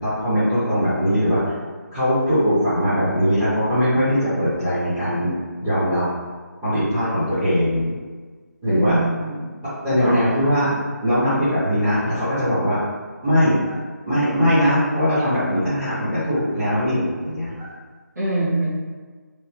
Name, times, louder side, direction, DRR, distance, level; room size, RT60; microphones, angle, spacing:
voice 1, 0.0-1.5 1.9-5.3 5.6-6.0 6.6-7.9 8.6-9.0 9.8-10.7 11.0-12.8 13.2-13.8 14.1-17.7, equal, 5° right, -20 dB, 0.8 m, -20 dB
voice 2, 8.7-9.4 10.0-10.2 18.1-18.7, right 2 dB, 65° right, -13 dB, 1.4 m, -23 dB
3.2 x 2.7 x 3.1 m, 1.4 s
figure-of-eight pair, 155°, 10 cm